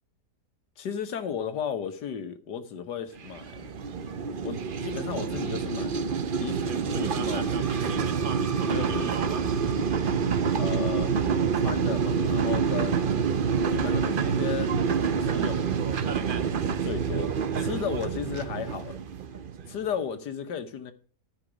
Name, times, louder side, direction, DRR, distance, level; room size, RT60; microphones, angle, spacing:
voice 1, 0.8-3.7 4.4-5.9 6.4-7.7 8.7-9.2 10.6-11.1 11.5-13.1 13.7-14.7 15.0-16.0 16.8-17.3 17.6-19.0 19.7-20.9, left 7 dB, 90° left, 1.8 m, -34 dB
sound 1, 3.2-19.8, right 6 dB, 45° right, 0.7 m, -27 dB
13.0 x 5.9 x 5.1 m
omnidirectional pair, 1.7 m